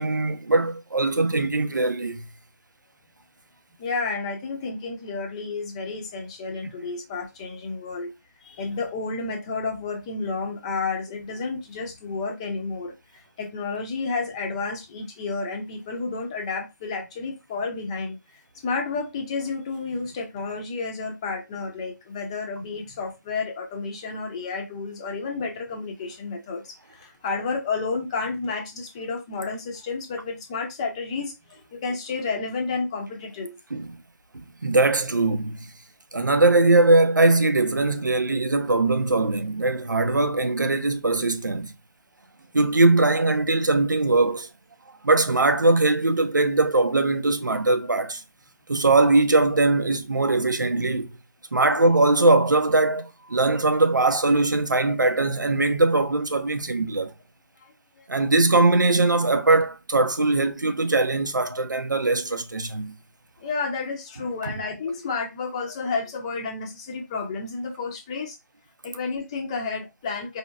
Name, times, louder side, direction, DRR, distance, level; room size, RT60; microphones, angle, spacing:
voice 1, 0.0-2.2 33.7-34.0 34.6-35.6 36.1-41.7 42.5-44.5 45.0-48.2 48.7-51.1 51.5-57.1 58.1-63.0 64.4-64.5, right 2 dB, 80° right, 0.7 m, -21 dB
voice 2, 3.8-8.1 8.4-18.2 18.6-33.6 57.6-58.1 63.4-68.4 68.8-70.4, left 4 dB, 20° left, 0.7 m, -31 dB
4.2 x 2.9 x 2.3 m
figure-of-eight pair, 155°, 10 cm